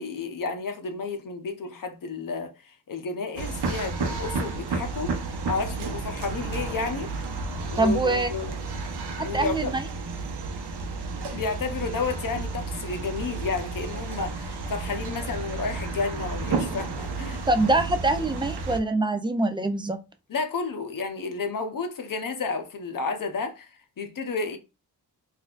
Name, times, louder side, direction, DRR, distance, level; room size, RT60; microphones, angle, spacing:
voice 1, 0.0-5.1 5.5-7.2 7.7-8.5 9.2-9.7 11.3-17.4 20.3-23.7 24.0-24.6, left 4 dB, 55° left, 0.8 m, -31 dB
sound 1, 3.4-18.8, right 3 dB, 75° right, 0.8 m, -32 dB
voice 2, 7.8-8.3 9.3-9.9 17.5-20.0, right 2 dB, 15° right, 0.3 m, -24 dB
4.0 x 2.6 x 2.4 m
wide cardioid pair, 105°, 40 cm